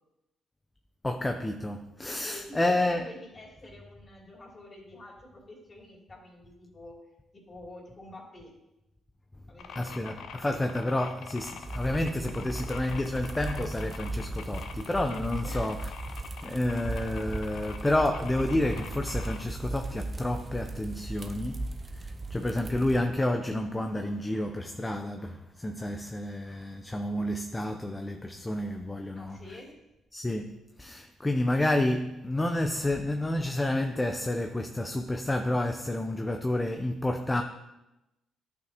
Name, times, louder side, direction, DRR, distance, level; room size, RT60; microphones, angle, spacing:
voice 1, 1.0-3.1 9.7-15.9 16.4-29.4 30.1-37.4, left 1 dB, 15° left, 0.5 m, -30 dB
voice 2, 2.2-7.0 7.3-8.5 9.5-10.1 15.4-15.8 29.1-29.8, left 1 dB, 35° left, 2.9 m, -48 dB
sound 1, 9.6-19.4, left 6 dB, 75° left, 0.7 m, -45 dB
sound 2, 11.6-23.0, right 2 dB, 30° right, 0.7 m, -37 dB
11.0 x 6.0 x 2.9 m
cardioid pair, 90°, 0 cm